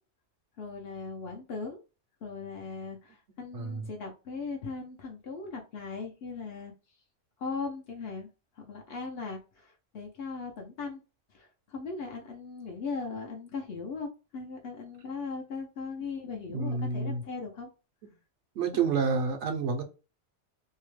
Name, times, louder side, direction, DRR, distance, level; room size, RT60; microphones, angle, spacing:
voice 1, 0.6-1.8 2.2-6.7 7.4-8.3 8.6-11.0 11.3-17.7, left 4 dB, 60° left, 0.8 m, -38 dB
voice 2, 3.5-3.9 16.5-17.2 18.6-19.8, right 5 dB, 75° right, 0.9 m, -29 dB
2.8 x 2.1 x 3.0 m
omnidirectional pair, 1.2 m